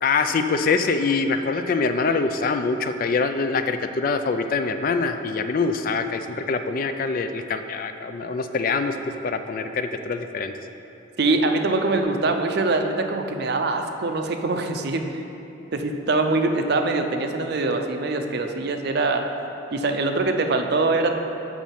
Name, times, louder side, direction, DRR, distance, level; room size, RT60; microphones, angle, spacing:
voice 1, 0.0-9.0 9.2-10.5, left 4 dB, 45° left, 8 dB, 0.3 m, -24 dB
voice 2, 11.2-15.2 15.7-19.2 19.7-21.1, right 3 dB, 55° right, 5 dB, 0.5 m, -23 dB
7.1 x 6.1 x 5.7 m, 2.9 s
head